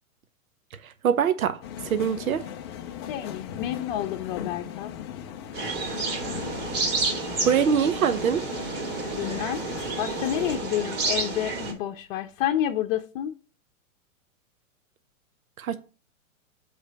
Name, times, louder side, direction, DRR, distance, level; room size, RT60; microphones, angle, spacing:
voice 1, 0.8-1.6 1.8-2.4 7.4-8.4 15.6-15.8, right 7 dB, 75° right, 0.8 m, -23 dB
sound 1, 1.6-10.6, left 9 dB, 20° left, 0.3 m, -38 dB
voice 2, 3.1-4.9 9.1-9.6 10.0-13.3, left 12 dB, 40° left, 0.7 m, -29 dB
sound 2, 5.5-11.7, right 3 dB, 45° right, 2.9 m, -30 dB
7.9 x 3.3 x 5.7 m
hypercardioid pair, 115°, 42 cm